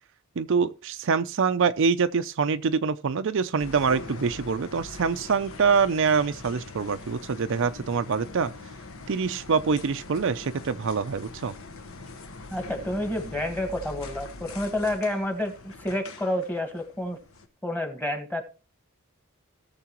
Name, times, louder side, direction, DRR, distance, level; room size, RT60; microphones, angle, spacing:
voice 1, 0.4-8.5 9.1-11.5, right 5 dB, 55° right, 0.5 m, -25 dB
sound 1, 3.6-17.5, left 3 dB, 70° left, 1.2 m, -43 dB
voice 2, 12.5-17.2 17.6-18.4, left 1 dB, 10° left, 1.4 m, -29 dB
17.5 x 6.8 x 3.0 m
head